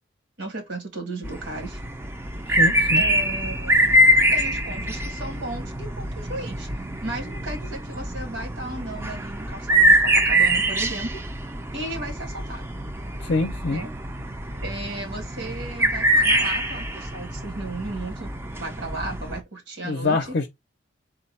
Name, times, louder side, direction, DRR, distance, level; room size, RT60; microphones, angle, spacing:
voice 1, 0.4-1.8 3.0-3.8 4.3-6.7 7.0-11.2 11.7-12.7 13.7-13.9 14.6-20.2, right 2 dB, 75° right, 1.5 m, -35 dB
sound 1, 1.2-19.4, right 1 dB, 15° right, 0.4 m, -24 dB
voice 2, 2.5-3.0 13.2-13.8 19.8-20.5, left 3 dB, 50° left, 0.5 m, -24 dB
3.8 x 2.3 x 4.0 m
head